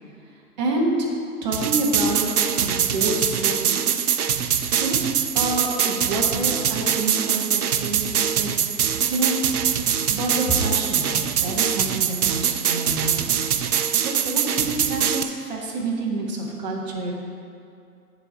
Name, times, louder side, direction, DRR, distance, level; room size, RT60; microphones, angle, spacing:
voice 1, 0.6-0.9 1.4-4.0 4.8-4.9 5.3-8.5 9.0-9.4 10.1-13.3 13.7-17.1, right 2 dB, 30° right, -2 dB, 1.2 m, -28 dB
sound 1, 1.5-15.2, right 8 dB, 65° right, 0.6 m, -23 dB
9.0 x 4.4 x 5.9 m, 2.5 s
figure-of-eight pair, 145°, 47 cm